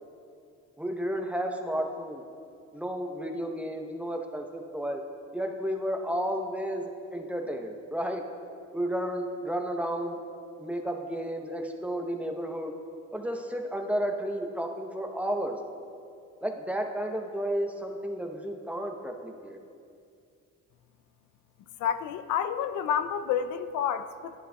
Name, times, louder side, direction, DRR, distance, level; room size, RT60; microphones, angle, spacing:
voice 1, 0.8-2.2 2.7-5.0 5.3-8.2 8.7-10.2 10.6-12.7 13.1-15.6 16.4-19.6, equal, 5° right, 3 dB, 0.7 m, -32 dB
voice 2, 21.8-24.4, left 8 dB, 75° left, 10 dB, 0.4 m, -29 dB
11.0 x 10.5 x 2.2 m, 2.4 s
cardioid pair, 90°, 30 cm